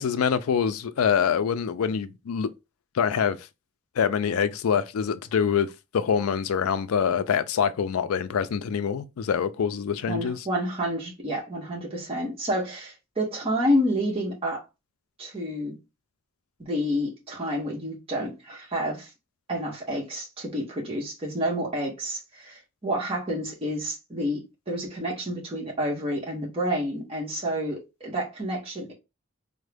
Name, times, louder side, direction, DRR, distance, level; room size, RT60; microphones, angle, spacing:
voice 1, 0.0-2.5 2.9-3.4 4.0-10.5, left 7 dB, 85° left, 0.4 m, -25 dB
voice 2, 10.1-14.6 15.2-15.8 16.6-19.1 19.5-28.9, equal, 25° right, 0.9 m, -29 dB
3.5 x 2.1 x 3.3 m
head